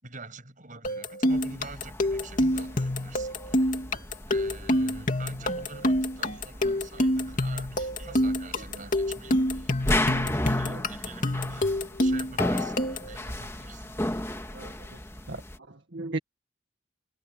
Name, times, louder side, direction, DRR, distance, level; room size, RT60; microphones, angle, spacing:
voice 1, 0.0-3.9 4.3-11.7 12.0-14.0, right 3 dB, 45° right, 7.5 m, -46 dB
sound 1, 0.8-13.2, left 1 dB, 45° left, 2.6 m, -27 dB
sound 2, 1.3-15.6, left 1 dB, 15° left, 2.1 m, -34 dB
voice 2, 14.5-15.0 15.3-16.2, right 2 dB, 70° right, 2.0 m, -37 dB
head